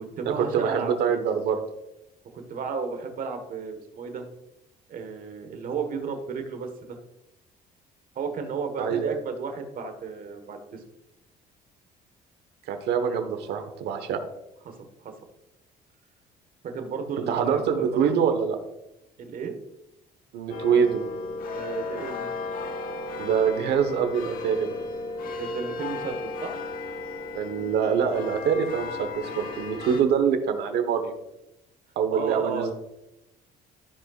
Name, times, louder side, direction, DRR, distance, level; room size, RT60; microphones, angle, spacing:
voice 1, 0.0-1.2 2.3-4.2 4.9-7.0 8.1-10.8 14.6-14.7 15.0-15.1 16.6-18.2 19.2-19.5 21.5-22.3 25.2-26.6 32.1-32.7, right 5 dB, 55° right, 6 dB, 1.5 m, -33 dB
voice 2, 0.5-1.6 8.8-9.2 12.7-14.2 17.3-18.6 20.3-21.0 23.2-24.7 27.3-31.1 32.0-32.7, right 7 dB, 75° right, 7 dB, 1.2 m, -25 dB
sound 1, 20.5-30.0, left 3 dB, 60° left, 1.2 m, -35 dB
14.0 x 5.2 x 2.4 m, 0.89 s
cardioid pair, 110°, 17 cm